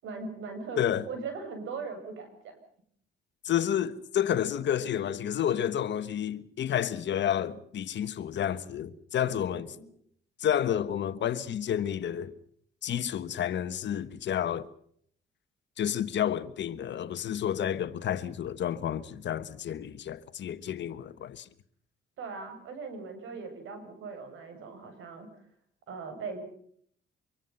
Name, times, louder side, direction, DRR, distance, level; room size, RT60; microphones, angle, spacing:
voice 1, 0.0-2.6 9.2-9.9 22.2-25.3 25.9-26.4, right 4 dB, 80° right, 7.6 m, -40 dB
voice 2, 3.4-9.7 10.4-12.3 12.8-14.7 15.8-21.5, left 10 dB, 65° left, 1.5 m, -30 dB
25.0 x 24.0 x 5.7 m
cardioid pair, 90°, 20 cm